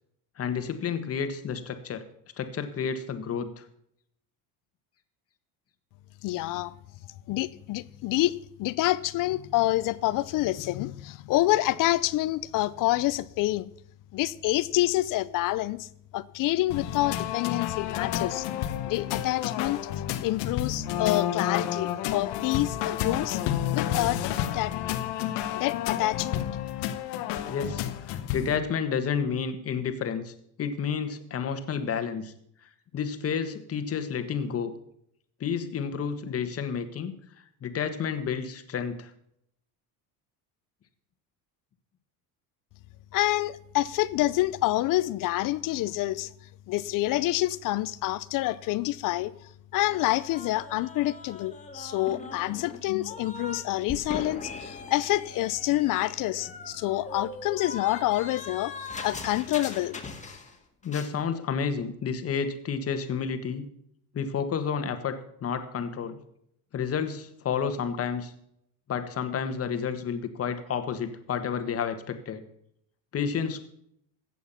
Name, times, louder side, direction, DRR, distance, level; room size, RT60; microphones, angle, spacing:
voice 1, 0.4-2.0 2.4-3.6 27.5-32.3 32.9-34.7 35.4-37.1 37.6-39.1 60.8-63.7 64.1-66.2 66.7-68.3 68.9-72.4 73.1-73.7, left 6 dB, 35° left, 1.6 m, -30 dB
voice 2, 6.2-6.7 7.3-13.7 14.1-15.9 16.1-18.5 18.9-19.8 20.2-23.4 23.7-24.7 25.5-26.5 43.1-46.3 46.7-49.3 49.7-58.7 59.0-60.0, left 16 dB, 50° left, 0.6 m, -27 dB
sound 1, 16.7-28.6, left 11 dB, 70° left, 1.2 m, -30 dB
sound 2, 49.9-53.6 53.9-60.6 60.8-61.1, left 3 dB, 15° left, 1.9 m, -41 dB
14.5 x 8.3 x 5.7 m
cardioid pair, 130°, 42 cm